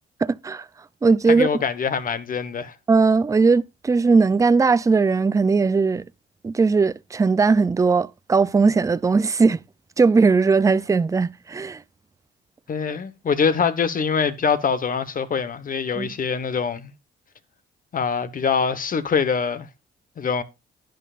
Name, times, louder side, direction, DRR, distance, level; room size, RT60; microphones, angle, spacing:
voice 1, 0.2-0.7 1.0-1.5 2.9-6.0 6.4-9.6 10.0-11.8 16.0-16.1, right 4 dB, 15° right, 0.4 m, -19 dB
voice 2, 1.3-2.7 12.7-16.9 17.9-19.7 20.2-20.4, left 6 dB, 45° left, 1.2 m, -24 dB
10.5 x 10.5 x 2.5 m
cardioid pair, 90°, 20 cm